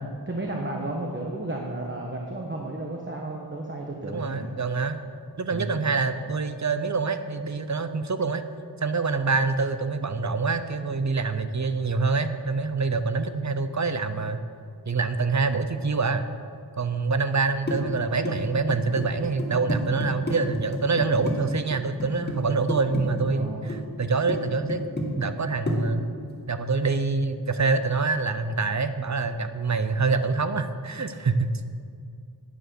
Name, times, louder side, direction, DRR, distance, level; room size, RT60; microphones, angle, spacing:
voice 1, 0.3-4.5 5.5-5.8 23.3-23.7, right 2 dB, 30° right, 0 dB, 1.2 m, -33 dB
voice 2, 4.1-5.0 5.4-8.4 8.8-14.4 14.9-16.3 16.8-24.8 25.1-26.1 26.5-31.7, right 4 dB, 45° right, 10 dB, 0.7 m, -26 dB
sound 1, 17.7-21.3 21.7-22.4 22.7-23.8 24.0-24.4 24.7-25.4 25.7-25.8, left 1 dB, 25° left, 2.3 m, -29 dB
9.5 x 9.5 x 6.2 m, 2.4 s
wide cardioid pair, 80°, 40 cm